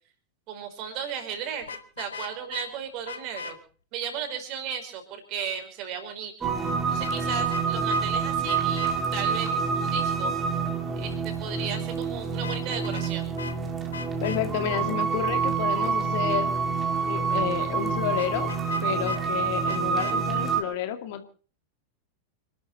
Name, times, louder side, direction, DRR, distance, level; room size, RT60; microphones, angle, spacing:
voice 1, 0.5-1.6 2.0-3.6 3.9-6.5 6.9-10.3 11.0-13.3 19.4-19.5, right 8 dB, 40° right, 6 dB, 5.2 m, -35 dB
Vehicle horn car horn honking, 1.6-2.7 3.1-3.5 7.0-7.6 7.9-8.0 8.5-8.9 12.3-13.1 13.4-13.6 13.9-14.4 18.2-19.2 19.7-20.2, left 6 dB, 70° left, 1.6 m, -38 dB
sound 1, 6.4-20.6, right 5 dB, 20° right, 3.3 m, -27 dB
voice 2, 14.2-16.5 17.1-18.5 18.8-21.3, left 11 dB, 50° left, 8 dB, 2.2 m, -30 dB
28.0 x 12.0 x 4.2 m, 0.40 s
figure-of-eight pair, 90°, 0 cm